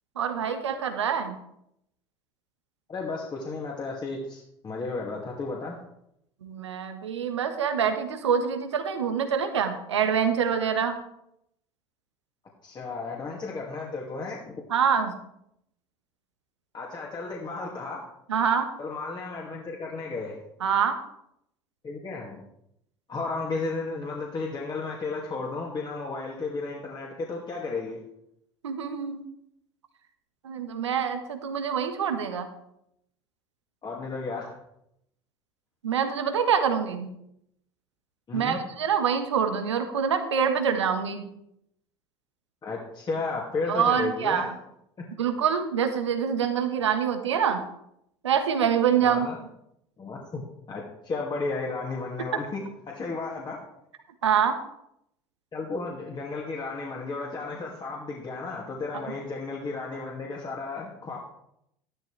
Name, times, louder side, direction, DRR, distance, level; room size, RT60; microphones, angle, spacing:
voice 1, 0.1-1.4 6.4-11.0 14.7-15.2 18.3-18.7 20.6-21.0 28.6-29.2 30.4-32.5 35.8-37.1 38.3-41.3 43.7-44.5 45.2-47.6 48.2-49.3 54.2-54.6, right 7 dB, 80° right, 7 dB, 1.4 m, -25 dB
voice 2, 2.9-5.8 12.6-14.6 16.7-18.1 18.8-20.4 21.8-22.4 23.1-28.0 33.8-34.5 38.3-38.6 42.6-44.5 49.0-49.4 50.0-50.4 50.7-53.6 55.5-61.2, left 3 dB, 30° left, -2 dB, 2.5 m, -33 dB
13.5 x 12.0 x 3.4 m, 0.78 s
hypercardioid pair, 70°, 15 cm